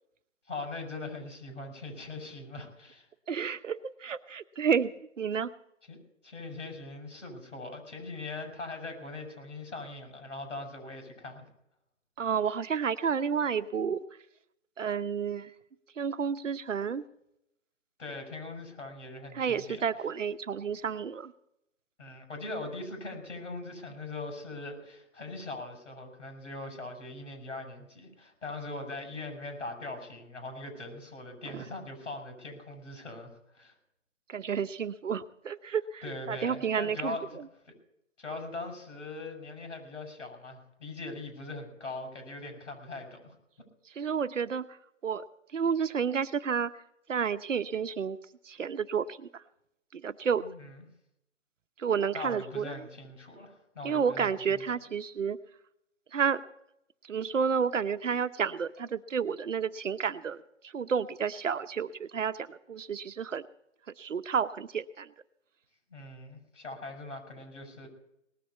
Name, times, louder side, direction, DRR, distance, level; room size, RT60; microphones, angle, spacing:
voice 1, 0.5-3.1 5.9-11.4 18.0-20.1 22.0-33.3 33.5-33.7 36.0-37.4 38.2-43.4 50.3-50.7 52.1-54.6 65.9-67.9, left 2 dB, 75° left, 3 dB, 6.4 m, -41 dB
voice 2, 3.3-5.5 12.2-14.0 14.8-15.5 16.0-17.0 19.3-21.3 31.5-31.6 34.3-36.0 36.3-37.2 44.0-44.7 45.0-45.2 45.5-46.7 47.1-48.2 48.5-49.3 49.9-50.4 51.8-52.8 53.8-55.4 56.1-56.4 57.1-60.4 60.7-63.4 64.0-65.1, right 6 dB, 75° right, 13 dB, 0.9 m, -30 dB
19.0 x 7.1 x 8.0 m, 0.79 s
figure-of-eight pair, 145°, 38 cm